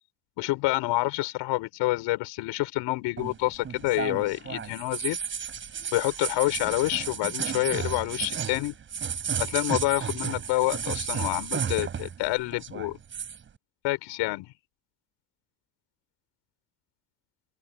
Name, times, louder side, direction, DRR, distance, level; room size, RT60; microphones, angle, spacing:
voice 1, 0.4-5.2 5.9-8.8 9.4-13.0 13.8-14.5, left 19 dB, 80° left, 5.6 m, -28 dB
sound 1, 3.2-12.3 12.5-13.4, right 7 dB, 25° right, 6.4 m, -33 dB
open air
cardioid pair, 180°, 43 cm